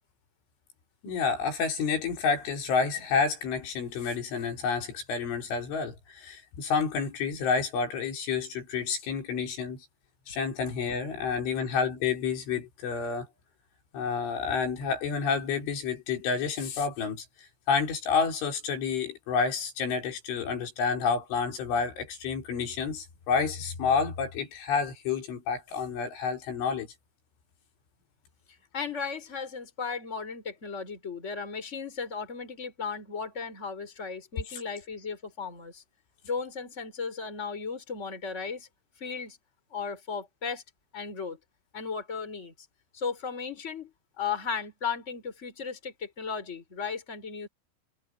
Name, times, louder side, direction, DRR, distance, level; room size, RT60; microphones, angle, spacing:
voice 1, 1.0-9.9 10.3-13.3 13.9-17.3 17.7-26.9 34.5-34.6, left 5 dB, 85° left, 7.0 m, -29 dB
voice 2, 28.7-35.8 36.2-38.7 39.0-39.4 39.7-40.6 40.9-41.4 41.7-42.5 42.9-47.5, left 5 dB, 15° left, 4.4 m, -35 dB
omnidirectional pair, 5.4 m